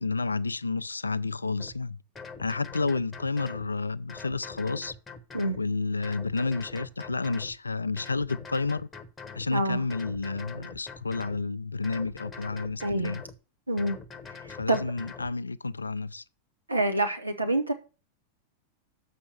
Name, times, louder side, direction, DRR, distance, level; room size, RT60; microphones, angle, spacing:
voice 1, 0.0-2.0 2.4-4.9 5.6-8.9 9.3-13.2 14.5-16.2, left 3 dB, 80° left, 0.4 m, -30 dB
sound 1, 1.6-1.7 2.2-3.7 4.1-5.6 6.0-7.6 8.0-9.5 9.9-11.4 11.8-13.4 13.8-15.3, left 5 dB, 15° left, 0.9 m, -44 dB
voice 2, 9.5-9.8 12.8-13.2 13.7-14.0 14.4-14.8 16.7-17.7, right 1 dB, 85° right, 1.0 m, -27 dB
7.3 x 5.3 x 6.8 m
figure-of-eight pair, 90°, 0 cm